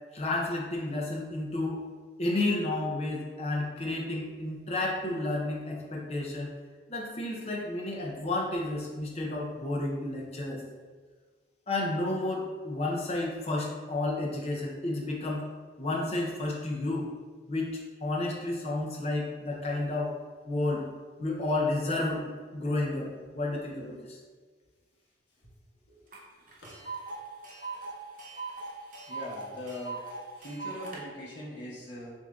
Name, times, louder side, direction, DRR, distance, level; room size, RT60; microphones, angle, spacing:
voice 1, 0.1-1.8 2.2-6.5 6.9-10.6 11.7-15.4 15.8-17.0 17.5-17.7 18.0-20.1 20.4-20.8 21.2-23.1 23.3-24.2, left 2 dB, 35° left, -1 dB, 0.6 m, -31 dB
Tick, 26.1-26.2 26.5-31.0, right 3 dB, 45° right, 0.7 m, -40 dB
voice 2, 29.1-30.0 30.4-32.1, left 1 dB, 80° left, -6 dB, 1.4 m, -41 dB
6.1 x 2.7 x 2.4 m, 1.5 s
head